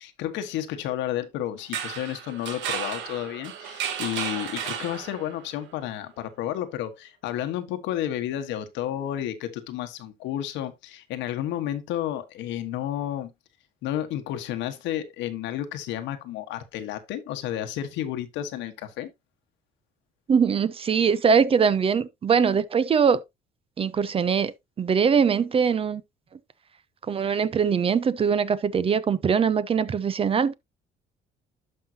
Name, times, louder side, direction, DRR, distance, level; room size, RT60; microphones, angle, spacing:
voice 1, 0.0-13.3 13.8-19.1, left 11 dB, 90° left, 1.4 m, -31 dB
sound 1, 1.6-5.5, right 8 dB, 90° right, 1.5 m, -33 dB
voice 2, 20.3-23.2 23.8-26.0 27.1-30.5, right 6 dB, 30° right, 0.6 m, -22 dB
11.5 x 5.6 x 2.8 m
cardioid pair, 125°, 19 cm